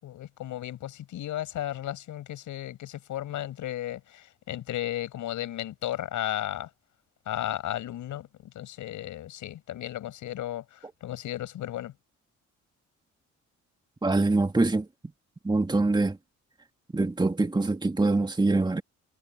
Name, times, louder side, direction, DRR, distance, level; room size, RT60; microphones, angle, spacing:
voice 1, 0.0-6.7 7.2-11.9, left 13 dB, 80° left, 6.7 m, -34 dB
voice 2, 14.0-14.9 15.4-16.2 16.9-18.8, right 2 dB, 15° right, 1.9 m, -24 dB
cardioid pair, 90°, 30 cm